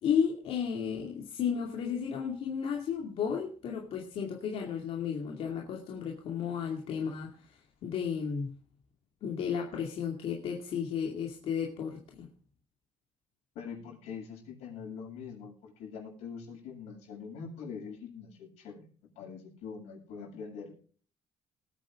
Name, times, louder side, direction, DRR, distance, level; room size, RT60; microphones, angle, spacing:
voice 1, 0.0-8.5 9.2-12.3, left 7 dB, 65° left, 2.5 m, -33 dB
voice 2, 13.6-18.9 19.2-20.8, left 6 dB, 90° left, 7.2 m, -43 dB
20.0 x 9.1 x 3.7 m
cardioid pair, 120°, 11 cm